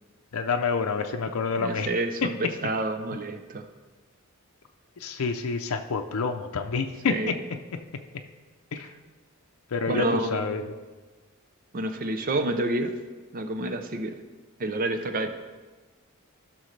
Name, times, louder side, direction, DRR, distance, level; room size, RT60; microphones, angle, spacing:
voice 1, 0.3-1.9 5.0-7.3 8.7-8.9 9.7-10.6, left 5 dB, 85° left, 5 dB, 0.5 m, -28 dB
voice 2, 1.6-3.6 7.1-7.3 9.9-10.5 11.7-12.9 13.3-14.1 14.6-15.3, right 2 dB, 40° right, 7 dB, 0.5 m, -28 dB
15.0 x 6.2 x 3.3 m, 1.3 s
head